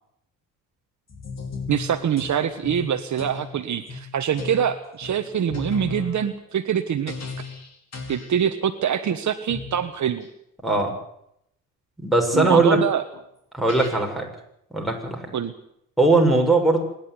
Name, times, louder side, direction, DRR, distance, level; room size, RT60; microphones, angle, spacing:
sound 1, 1.1-2.4 2.6-3.5 3.9-4.1 4.4-4.7 5.0-5.2 5.5-6.2 7.1-7.7 7.9-8.3 9.5-9.7 13.1-13.2 13.7-13.9, left 4 dB, 50° left, 5.0 m, -34 dB
voice 1, 1.7-7.1 8.1-10.3 12.3-13.0 15.3-15.5, right 8 dB, 55° right, 8 dB, 1.4 m, -24 dB
voice 2, 12.0-12.8 13.5-14.3 14.7-15.2 16.0-16.8, right 2 dB, ahead, 0 dB, 6.8 m, -19 dB
25.5 x 11.0 x 9.8 m, 0.76 s
cardioid pair, 80°, 35 cm